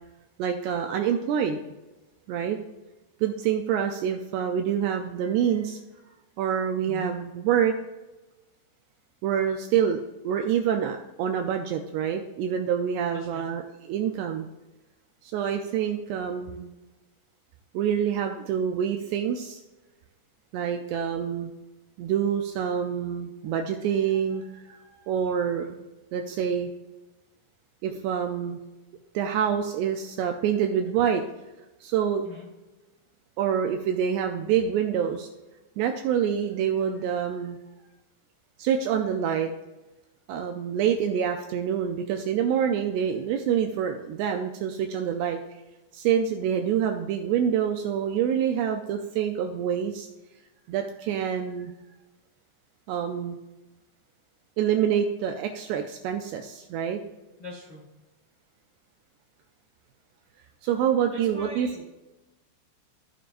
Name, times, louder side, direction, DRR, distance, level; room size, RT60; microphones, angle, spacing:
voice 1, 0.4-1.6 2.3-2.6 3.2-5.8 6.4-7.7 9.2-13.6 13.9-14.5 15.2-16.7 17.7-19.6 20.5-21.5 22.0-25.9 26.1-26.7 27.8-28.6 29.1-31.2 31.8-32.2 33.4-35.3 35.8-37.6 38.6-39.5 40.3-45.4 45.9-50.1 50.7-51.7 52.9-53.4 54.6-57.0 60.6-61.7, right 8 dB, 85° right, 4 dB, 2.4 m, -26 dB
voice 2, 13.1-13.4 32.2-32.5 57.4-57.8 61.1-61.9, left 1 dB, 80° left, -4 dB, 0.9 m, -42 dB
15.0 x 6.6 x 2.5 m, 1.1 s
omnidirectional pair, 5.4 m